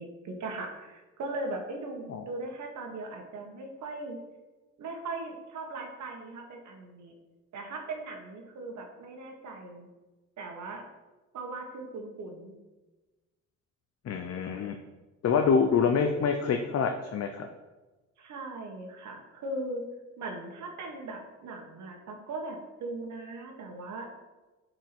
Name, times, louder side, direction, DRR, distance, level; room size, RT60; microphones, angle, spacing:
voice 1, 0.0-4.2 4.8-7.1 7.5-9.9 10.4-10.8 11.3-12.5 18.2-19.8 20.2-24.1, right 2 dB, 70° right, 2 dB, 1.7 m, -39 dB
voice 2, 14.0-14.8 15.2-17.5, left 6 dB, 55° left, 5 dB, 0.8 m, -26 dB
9.4 x 4.8 x 6.1 m, 1.2 s
cardioid pair, 90°, 30 cm